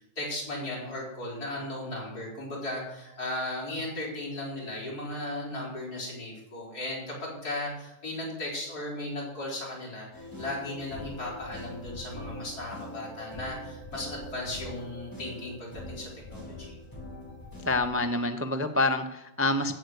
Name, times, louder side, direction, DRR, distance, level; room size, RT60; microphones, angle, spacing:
voice 1, 0.2-16.8, left 1 dB, 70° left, -4 dB, 5.4 m, -36 dB
sound 1, 10.1-17.9, left 1 dB, 10° left, 5.8 m, -43 dB
voice 2, 17.7-19.8, left 2 dB, 15° right, 7 dB, 0.4 m, -27 dB
15.0 x 8.0 x 6.6 m, 0.89 s
omnidirectional pair, 1.7 m